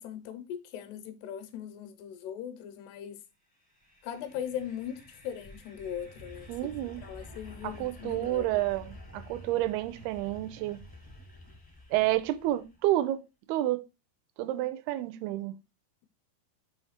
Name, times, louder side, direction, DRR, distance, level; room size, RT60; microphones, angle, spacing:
voice 1, 0.0-3.2 4.0-6.7 7.0-8.6, left 9 dB, 85° left, 2.9 m, -39 dB
sound 1, 3.6-12.8, left 1 dB, 30° left, 0.4 m, -50 dB
voice 2, 6.5-7.0 7.6-10.8 11.9-13.9 14.4-15.6, right 15 dB, 80° right, 2.5 m, -30 dB
7.0 x 3.1 x 5.6 m
omnidirectional pair, 4.6 m